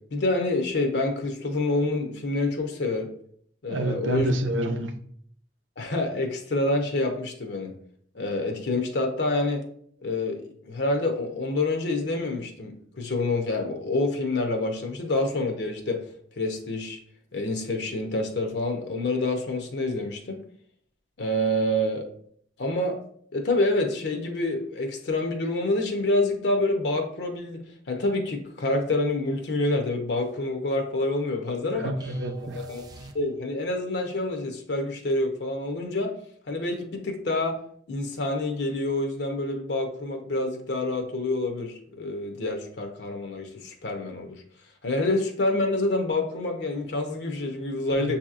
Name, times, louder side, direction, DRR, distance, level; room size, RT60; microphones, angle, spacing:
voice 1, 0.1-3.1 3.6-4.3 5.8-7.7 8.1-9.6 10.0-16.0 16.4-17.0 17.3-20.4 21.2-22.1 22.6-23.0 23.3-31.9 32.5-32.8 33.1-36.1 36.5-37.6 37.9-44.4 44.8-48.2, left 2 dB, 60° left, 0.7 m, -27 dB
voice 2, 3.7-5.0 31.7-32.7 48.0-48.2, right 1 dB, 85° right, 0.6 m, -28 dB
sound 1, 32.0-33.7, right 2 dB, 20° right, 0.4 m, -47 dB
6.8 x 2.8 x 2.4 m
head